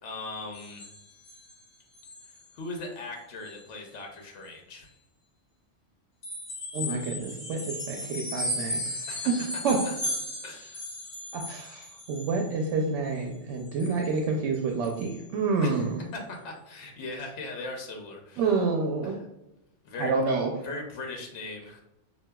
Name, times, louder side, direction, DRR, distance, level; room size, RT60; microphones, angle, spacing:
voice 1, 0.0-0.9 2.5-4.9 9.1-9.9 10.4-10.8 15.6-15.9 16.1-18.7 19.0-19.3 19.8-20.2 20.6-21.8, left 2 dB, 80° left, 1 dB, 1.1 m, -39 dB
sound 1, 0.5-1.6 1.9-2.5 2.8-3.0 3.4-3.6 6.2-12.7 13.1-14.2 14.5-14.6 14.8-15.2 15.7-15.8, left 1 dB, 45° left, 1.2 m, -36 dB
voice 2, 6.7-8.8 9.3-9.8 11.3-16.0 18.4-19.1 20.0-20.5, right 4 dB, 80° right, 2 dB, 0.9 m, -28 dB
6.2 x 2.2 x 2.2 m, 0.90 s
omnidirectional pair, 1.2 m